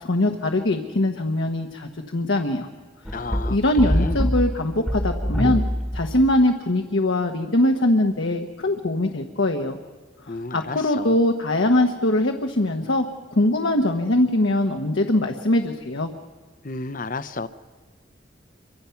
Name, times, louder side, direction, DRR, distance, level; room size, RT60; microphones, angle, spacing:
voice 1, 0.0-2.7 3.5-5.6 5.9-9.8 10.3-16.1, left 1 dB, 75° left, 4 dB, 1.2 m, -22 dB
sound 1, 3.0-6.4, equal, ahead, 1.2 m, -25 dB
voice 2, 3.1-4.2 10.3-11.2 16.6-17.5, left 3 dB, 45° left, 12 dB, 0.8 m, -32 dB
27.5 x 24.0 x 5.9 m, 1.4 s
head